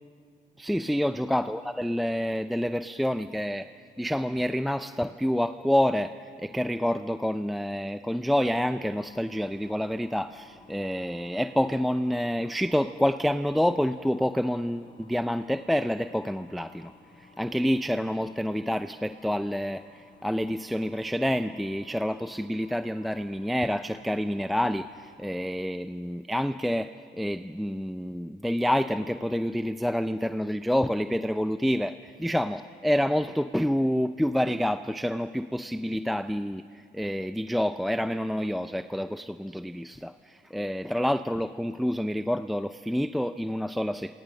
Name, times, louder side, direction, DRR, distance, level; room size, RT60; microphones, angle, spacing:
voice 1, 0.6-3.7 4.0-16.9 17.2-44.2, equal, ahead, 11 dB, 0.5 m, -28 dB
sound 1, 8.2-25.2, left 3 dB, 25° left, 4.2 m, -55 dB
27.5 x 27.0 x 6.5 m, 2.2 s
cardioid pair, 90°, 20 cm